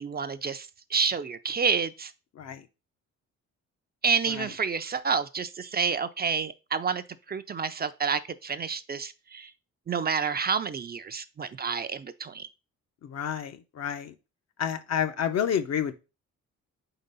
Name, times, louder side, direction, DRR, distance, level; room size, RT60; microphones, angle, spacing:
voice 1, 0.0-2.1 4.0-9.5 9.9-12.5, right 5 dB, 30° right, 0.5 m, -29 dB
voice 2, 2.3-2.7 4.3-4.5 13.0-14.1 14.6-15.9, left 8 dB, 60° left, 0.8 m, -30 dB
4.4 x 4.0 x 5.4 m
cardioid pair, 90°, 30 cm